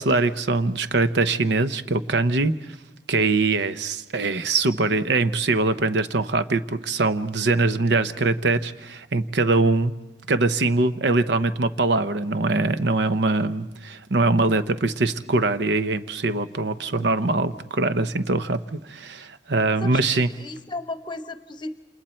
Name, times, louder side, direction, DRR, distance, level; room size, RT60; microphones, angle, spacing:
voice 1, 0.0-2.7 3.1-9.9 10.3-20.3, right 3 dB, 70° right, 10 dB, 0.8 m, -22 dB
voice 2, 19.8-21.8, left 2 dB, 25° left, 8 dB, 1.0 m, -35 dB
28.5 x 28.0 x 4.4 m, 0.99 s
head